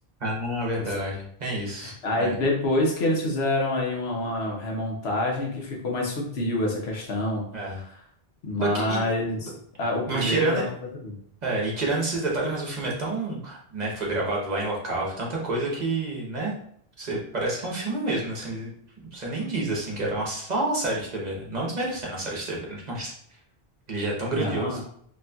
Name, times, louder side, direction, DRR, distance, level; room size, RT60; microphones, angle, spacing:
voice 1, 0.2-2.3 7.5-7.8 8.6-9.0 10.1-10.6 11.4-16.6 17.0-18.7 19.1-23.1 23.9-24.8, right 2 dB, 45° right, -3 dB, 1.0 m, -29 dB
voice 2, 1.8-7.9 8.4-9.5 9.8-10.7 10.9-11.1 24.3-24.8, left 1 dB, 80° left, -1 dB, 1.1 m, -27 dB
4.0 x 2.9 x 2.3 m, 0.66 s
omnidirectional pair, 1.1 m